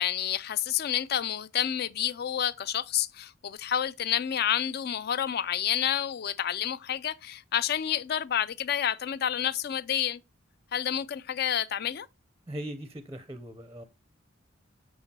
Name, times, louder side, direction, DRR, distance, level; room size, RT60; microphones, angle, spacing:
voice 1, 0.0-10.2 10.7-12.1, left 10 dB, 55° left, 0.4 m, -29 dB
voice 2, 12.5-13.8, right 1 dB, 15° right, 0.5 m, -39 dB
7.0 x 6.4 x 2.8 m
head